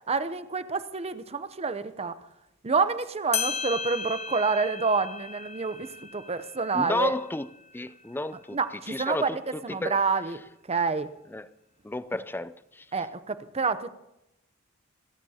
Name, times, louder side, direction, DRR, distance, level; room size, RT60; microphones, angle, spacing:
voice 1, 0.1-2.1 2.6-7.1 8.5-10.4 10.7-11.1 12.9-13.9, right 4 dB, 30° right, 12 dB, 0.7 m, -28 dB
sound 1, 3.0-3.1 3.3-8.4, left 6 dB, 30° left, 0.8 m, -36 dB
voice 2, 6.7-8.6 8.9-10.0 11.3-11.5 11.8-12.9, left 2 dB, 10° left, 16 dB, 0.4 m, -32 dB
28.0 x 13.5 x 2.8 m, 0.88 s
head